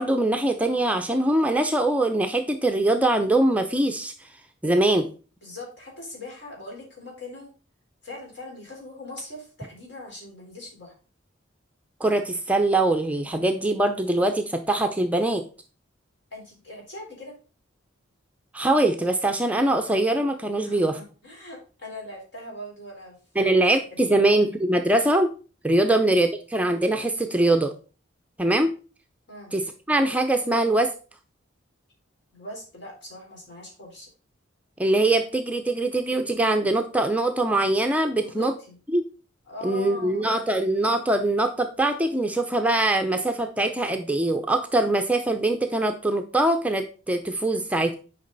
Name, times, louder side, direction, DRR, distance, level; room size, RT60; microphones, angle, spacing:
voice 1, 0.0-4.3 4.6-5.1 12.0-15.4 18.5-21.0 23.4-25.3 25.6-27.7 28.4-28.7 29.5-30.9 34.8-38.5 38.9-39.1 39.6-47.9, right 2 dB, 5° right, 5 dB, 0.5 m, -22 dB
voice 2, 5.4-7.5 8.0-11.0 16.3-17.4 20.6-23.6 23.9-24.3 29.3-29.5 32.3-34.1 38.2-38.8 39.5-40.3, left 1 dB, 60° left, -2 dB, 4.0 m, -41 dB
9.6 x 5.2 x 4.0 m, 0.37 s
head